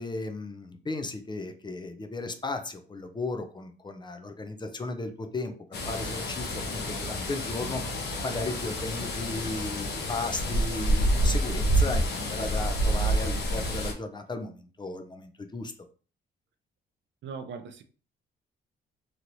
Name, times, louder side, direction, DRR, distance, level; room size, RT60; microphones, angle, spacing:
voice 1, 0.0-7.8 8.2-15.7, left 2 dB, 20° left, 0.5 m, -35 dB
sound 1, 5.7-13.9, right 1 dB, 55° left, 1.0 m, -28 dB
voice 2, 17.2-17.8, right 5 dB, 65° right, 0.5 m, -39 dB
2.9 x 2.9 x 2.6 m
cardioid pair, 90°, 20 cm